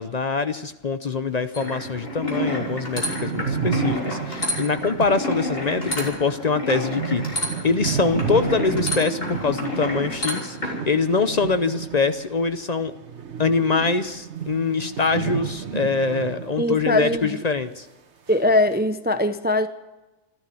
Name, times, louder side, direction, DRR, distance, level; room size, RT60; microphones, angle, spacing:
voice 1, 0.0-12.9 13.4-17.9, left 4 dB, 45° left, 11 dB, 0.8 m, -24 dB
sound 1, 1.5-10.8, left 1 dB, 60° left, 3.9 m, -29 dB
sound 2, 1.6-1.7 2.0-2.1 2.3-12.5 12.8-17.3 17.6-17.7 18.3-18.7, right 7 dB, 85° right, 1.5 m, -32 dB
voice 2, 16.6-17.4 18.3-19.7, left 1 dB, 10° right, 10 dB, 0.5 m, -21 dB
14.5 x 12.5 x 7.7 m, 1.1 s
omnidirectional pair, 1.1 m